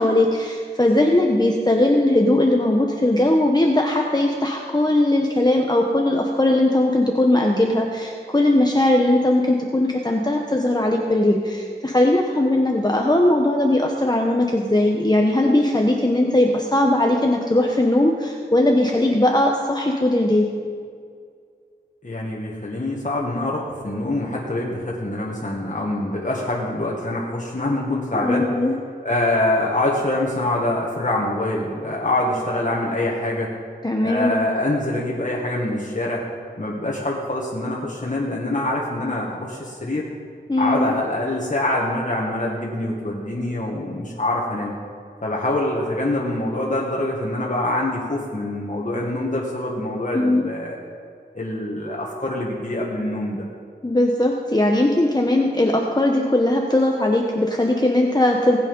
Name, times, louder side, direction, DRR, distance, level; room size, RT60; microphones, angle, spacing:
voice 1, 0.0-20.5 28.1-28.7 33.8-34.5 40.5-40.9 50.1-50.4 53.8-58.6, left 1 dB, 25° left, 1 dB, 1.0 m, -19 dB
voice 2, 22.0-28.5 29.0-33.5 34.0-36.2 36.6-40.1 40.6-44.7 45.2-50.8 51.3-53.4, left 1 dB, 45° left, -4 dB, 1.8 m, -25 dB
19.0 x 8.4 x 5.4 m, 2.2 s
wide cardioid pair, 60°, 18 cm